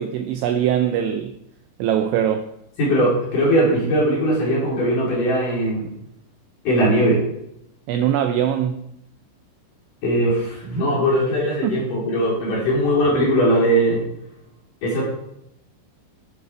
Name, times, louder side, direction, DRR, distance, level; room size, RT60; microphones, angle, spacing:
voice 1, 0.0-1.3 1.8-2.5 7.9-8.8 11.6-11.8, right 9 dB, 80° right, 2.7 m, -22 dB
voice 2, 2.8-5.9 6.6-7.2 10.0-14.0 14.8-15.0, equal, 45° left, 4.4 m, -19 dB
12.0 x 8.4 x 4.6 m
omnidirectional pair, 5.9 m